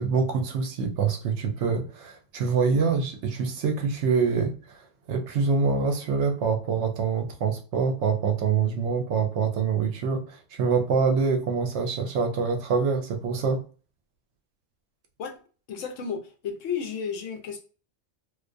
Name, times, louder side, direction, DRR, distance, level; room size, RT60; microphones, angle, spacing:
voice 1, 0.0-4.8 5.1-13.6, right 5 dB, 70° right, 0.8 m, -25 dB
voice 2, 15.7-17.6, left 6 dB, 80° left, 1.0 m, -33 dB
2.4 x 2.2 x 2.4 m
omnidirectional pair, 1.3 m